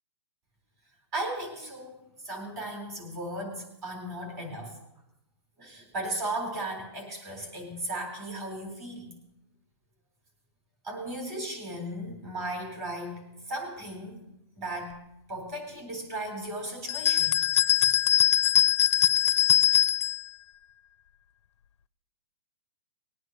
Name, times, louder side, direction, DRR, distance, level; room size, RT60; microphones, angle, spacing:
voice 1, 1.1-2.0 2.2-4.8 5.6-9.1 10.8-13.2 13.5-14.2 14.6-14.9 15.3-17.3, right 1 dB, 25° right, 1 dB, 3.8 m, -36 dB
sound 1, 16.9-20.2, left 10 dB, 75° left, 0.4 m, -22 dB
20.5 x 9.4 x 3.1 m, 0.82 s
hypercardioid pair, 170°, 15 cm